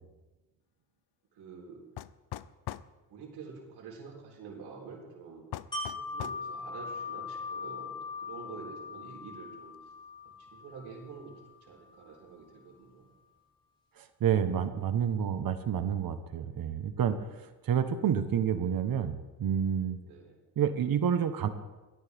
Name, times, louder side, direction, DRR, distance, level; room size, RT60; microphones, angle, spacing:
voice 1, 1.3-1.8 3.1-5.4 5.9-9.7 10.4-11.3 11.6-13.1 20.0-20.4, right 5 dB, 90° right, -2 dB, 3.9 m, -47 dB
sound 1, 2.0-2.9 5.5-6.4, left 14 dB, 75° left, 0.6 m, -40 dB
Wind chime, 5.7-11.5 11.9-12.0, left 4 dB, 10° left, 5.5 m, -40 dB
voice 2, 14.0-20.0 20.6-21.5, right 8 dB, 60° right, 9 dB, 1.1 m, -29 dB
17.0 x 13.0 x 3.5 m, 1.1 s
cardioid pair, 85°, 39 cm